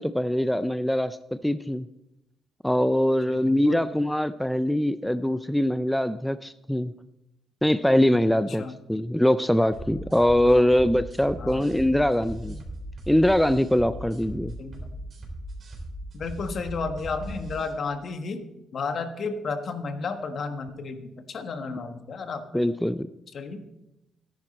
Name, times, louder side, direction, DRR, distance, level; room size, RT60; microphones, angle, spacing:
voice 1, 0.0-1.9 2.6-6.9 7.6-8.6 8.9-12.6 13.1-14.5 22.5-23.1, left 1 dB, 5° left, 13 dB, 0.4 m, -23 dB
voice 2, 3.3-3.8 8.5-8.7 10.4-10.7 11.4-11.7 12.4-12.6 14.6-14.9 16.1-18.4 18.7-22.4 23.3-23.6, left 4 dB, 55° left, 8 dB, 1.3 m, -33 dB
sound 1, 9.7-17.7, right 1 dB, 50° right, 3.8 m, -38 dB
13.5 x 10.5 x 4.2 m, 0.90 s
cardioid pair, 90°, 0 cm